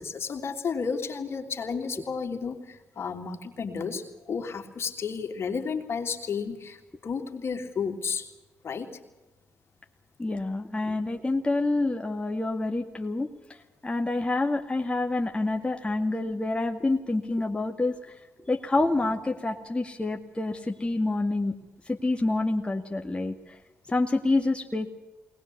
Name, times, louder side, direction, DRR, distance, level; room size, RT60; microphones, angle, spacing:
voice 1, 0.0-8.3 8.6-8.9, left 5 dB, 55° left, 3 dB, 3.1 m, -32 dB
voice 2, 10.2-17.9 18.4-21.6 21.9-23.6 23.9-24.9, left 2 dB, 20° left, 2 dB, 2.1 m, -27 dB
21.5 x 19.5 x 8.4 m, 1.1 s
supercardioid pair, 50°, 5 cm